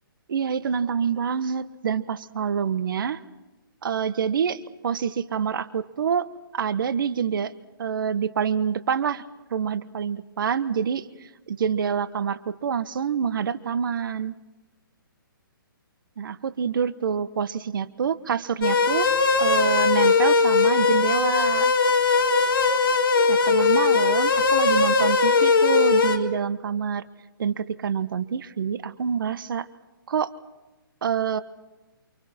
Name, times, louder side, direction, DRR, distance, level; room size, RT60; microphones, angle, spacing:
voice 1, 0.3-3.2 3.8-6.3 6.5-7.5 7.8-9.2 9.5-11.1 11.5-14.3 16.2-19.1 19.4-21.7 23.3-27.0 27.4-29.7 30.1-30.3 31.0-31.4, right 7 dB, 65° right, 14 dB, 1.3 m, -26 dB
sound 1, 18.6-26.2, left 4 dB, 70° left, 3.8 m, -20 dB
29.0 x 27.5 x 4.4 m, 1.1 s
hypercardioid pair, 150°, 12 cm